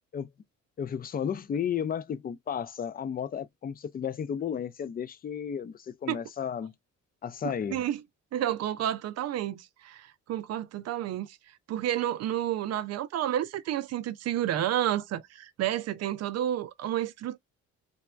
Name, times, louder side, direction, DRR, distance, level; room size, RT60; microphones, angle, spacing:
voice 1, 0.8-6.7 7.2-7.8, left 8 dB, 30° left, 0.4 m, -33 dB
voice 2, 7.4-8.0 8.3-11.4 11.7-17.4, right 11 dB, 60° right, 0.4 m, -30 dB
3.3 x 2.1 x 2.2 m
cardioid pair, 90°, 30 cm